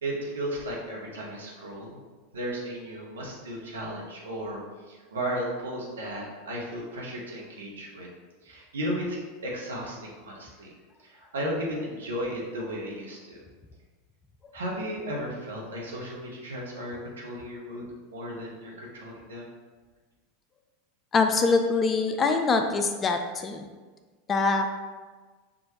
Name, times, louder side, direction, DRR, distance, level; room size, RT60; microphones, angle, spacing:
voice 1, 0.0-2.0 2.3-4.6 4.9-8.1 8.4-10.7 11.0-13.4 14.5-19.5, equal, 75° right, -3 dB, 1.1 m, -35 dB
voice 2, 21.1-23.6 24.3-24.8, left 4 dB, 25° left, 6 dB, 0.4 m, -24 dB
6.1 x 2.5 x 3.1 m, 1.4 s
figure-of-eight pair, 85°, 0 cm